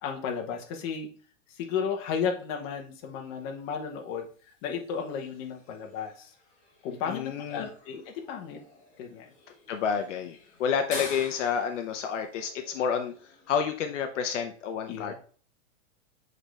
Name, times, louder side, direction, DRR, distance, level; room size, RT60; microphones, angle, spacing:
voice 1, 0.0-1.1 1.5-4.3 4.6-6.3 6.8-8.6 9.0-9.2 14.9-15.1, left 6 dB, 35° left, 2 dB, 1.2 m, -33 dB
sound 1, 2.5-14.4, left 3 dB, 20° left, 1.9 m, -48 dB
voice 2, 7.1-7.7 9.7-15.1, left 7 dB, 70° left, 5 dB, 0.9 m, -30 dB
7.1 x 4.0 x 3.3 m, 0.43 s
supercardioid pair, 160°, 38 cm